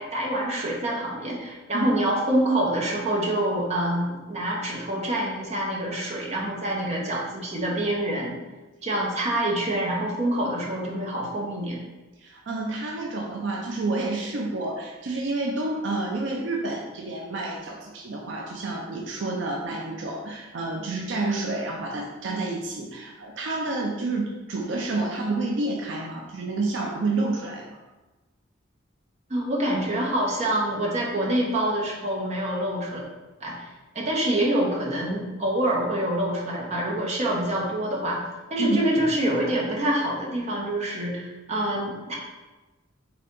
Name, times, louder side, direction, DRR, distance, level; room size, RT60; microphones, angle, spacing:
voice 1, 0.0-8.4 8.8-11.8 29.3-33.0 33.4-33.6 33.9-38.2 38.5-42.2, right 1 dB, 35° right, -3 dB, 0.9 m, -26 dB
voice 2, 12.2-27.8 38.6-38.8, right 2 dB, 65° right, 0 dB, 0.5 m, -29 dB
3.8 x 3.3 x 3.7 m, 1.1 s
head